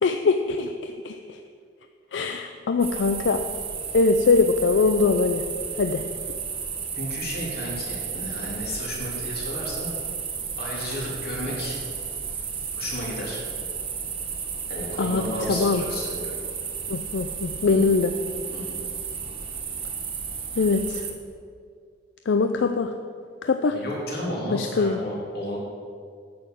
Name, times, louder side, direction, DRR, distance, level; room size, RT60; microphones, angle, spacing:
voice 1, 0.0-1.4 2.1-3.4 3.9-5.4 5.8-6.0 15.0-15.8 16.9-18.1 20.6-21.0 22.3-22.9 23.4-23.8 24.5-25.0, left 4 dB, 80° left, 7 dB, 0.5 m, -22 dB
sound 1, 2.8-21.1, right 6 dB, 30° right, 1.0 m, -33 dB
voice 2, 7.0-9.9 10.6-11.8 12.8-13.4 14.7-16.4 17.7-17.9 18.5-18.8 23.7-25.6, left 1 dB, 55° left, -4 dB, 3.1 m, -33 dB
9.4 x 6.8 x 7.5 m, 2.2 s
head